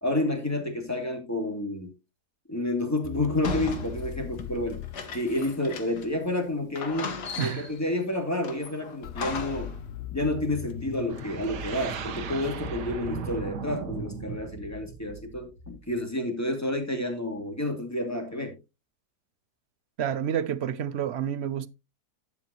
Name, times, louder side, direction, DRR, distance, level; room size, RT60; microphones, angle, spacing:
voice 1, 0.0-1.9 2.5-4.8 5.1-9.7 10.1-18.5, left 1 dB, 10° left, 2.3 m, -30 dB
sound 1, 3.0-6.0 9.0-12.5, left 11 dB, 55° left, 0.7 m, -40 dB
sound 2, 3.4-6.2 6.4-6.5 6.8-7.9 8.4-9.8, left 4 dB, 90° left, 2.1 m, -36 dB
sound 3, 11.1-15.9, right 4 dB, 85° right, 1.7 m, -37 dB
voice 2, 20.0-21.7, right 9 dB, 60° right, 0.7 m, -29 dB
11.5 x 8.1 x 2.9 m
omnidirectional pair, 1.7 m